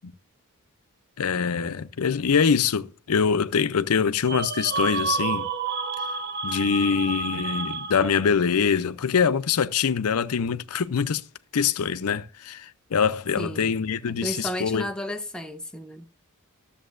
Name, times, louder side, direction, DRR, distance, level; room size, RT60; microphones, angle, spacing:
voice 1, 1.2-5.5 6.4-11.2 11.5-14.9, left 6 dB, 75° left, 0.6 m, -24 dB
sound 1, 4.2-8.4, right 4 dB, 45° right, 0.7 m, -30 dB
voice 2, 13.4-13.8 14.1-16.1, left 1 dB, 5° left, 0.5 m, -33 dB
12.5 x 7.3 x 2.5 m
head